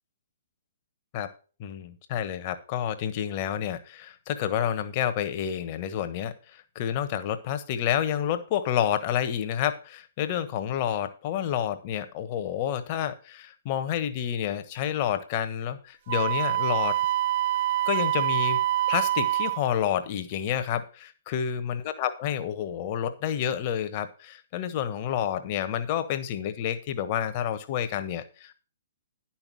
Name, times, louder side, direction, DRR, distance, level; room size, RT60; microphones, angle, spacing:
voice 1, 1.6-16.9 17.9-18.6 18.9-28.5, left 9 dB, 35° left, 10 dB, 1.3 m, -29 dB
Wind instrument woodwind instrument, 16.1-19.6, right 13 dB, 45° right, 0.5 m, -25 dB
10.5 x 5.9 x 6.2 m, 0.38 s
figure-of-eight pair, 125°, 0 cm